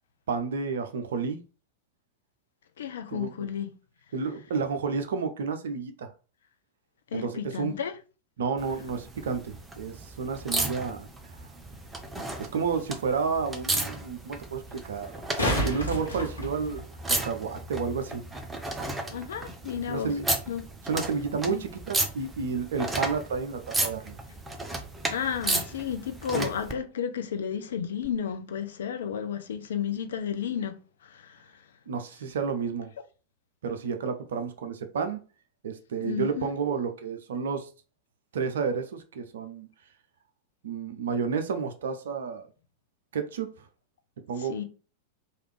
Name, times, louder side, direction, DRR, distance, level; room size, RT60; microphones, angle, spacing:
voice 1, 0.3-1.4 3.1-3.5 4.1-6.1 7.1-7.7 8.4-11.1 12.4-18.2 19.9-20.3 20.9-24.2 26.3-26.5 31.9-32.9 33.6-35.2 35.6-37.7 38.3-39.7 40.6-42.5 43.1-43.7 44.3-44.6, right 5 dB, 60° right, 0.4 m, -31 dB
voice 2, 2.8-3.7 7.1-7.9 19.1-20.1 20.5-20.6 21.5-21.6 25.1-30.8 31.0-31.4 36.0-36.5 44.4-44.6, left 8 dB, 60° left, 0.4 m, -32 dB
sound 1, 8.6-26.7 28.0-28.1, right 2 dB, 10° right, 0.5 m, -34 dB
sound 2, 15.0-17.2 20.0-20.1, equal, 80° left, 1.3 m, -30 dB
3.2 x 2.4 x 3.1 m
figure-of-eight pair, 90°, 0 cm